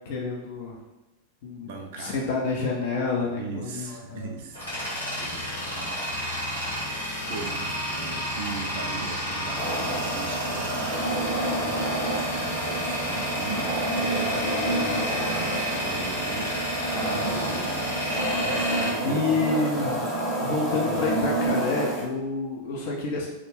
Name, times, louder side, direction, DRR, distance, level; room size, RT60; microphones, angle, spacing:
voice 1, 0.1-0.7 1.4-1.7 2.0-4.3 8.0-8.2 19.0-20.0 20.4-23.3, left 3 dB, 50° left, -1 dB, 0.4 m, -28 dB
voice 2, 1.6-2.3 3.2-6.0 6.7-17.8 18.4-19.2, right 4 dB, 55° right, 2 dB, 0.4 m, -39 dB
Tools, 4.1-19.9, left 1 dB, 85° left, 0.8 m, -31 dB
sound 1, 9.6-22.1, right 1 dB, ahead, 0.6 m, -28 dB
2.3 x 2.0 x 3.1 m, 1.0 s
figure-of-eight pair, 90°, 0 cm